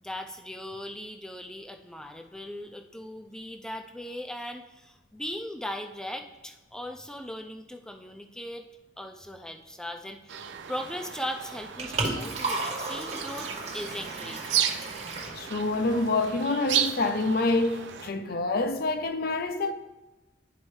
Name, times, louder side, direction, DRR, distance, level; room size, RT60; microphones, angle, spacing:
voice 1, 0.0-8.6 9.0-10.4 10.7-14.7, left 1 dB, 5° left, 0.5 m, -38 dB
sound 1, 10.3-18.1, right 9 dB, 90° right, 0.5 m, -34 dB
Liquid, 11.4-16.4, right 2 dB, 40° right, 1.0 m, -35 dB
voice 2, 15.4-19.7, left 2 dB, 55° left, 0.5 m, -27 dB
11.0 x 4.3 x 3.2 m
head